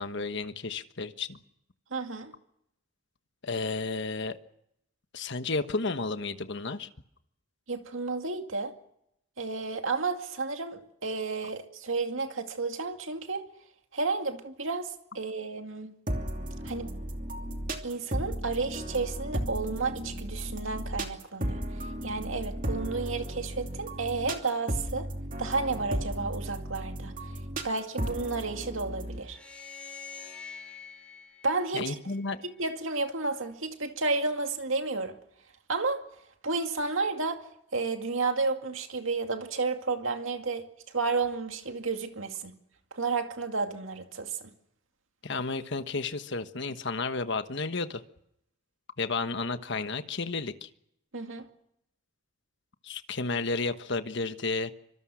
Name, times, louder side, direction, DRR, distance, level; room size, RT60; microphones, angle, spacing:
voice 1, 0.0-1.4 3.4-4.4 5.1-6.9 31.7-32.4 45.2-48.0 49.0-50.7 52.8-54.7, left 3 dB, 55° left, 1.3 m, -32 dB
voice 2, 1.9-2.3 7.7-8.7 9.4-13.4 13.9-15.9 16.6-16.9 17.8-21.6 22.0-25.1 25.4-27.1 27.6-29.4 31.4-32.0 32.4-35.2 35.7-36.0 36.4-37.5 37.7-40.7 40.9-42.5 42.9-44.4 51.1-51.5, right 3 dB, 70° right, 2.3 m, -31 dB
sound 1, 16.1-29.2, right 1 dB, 40° right, 2.8 m, -35 dB
sound 2, 29.2-32.5, left 6 dB, 5° left, 6.5 m, -46 dB
25.0 x 24.5 x 6.3 m
head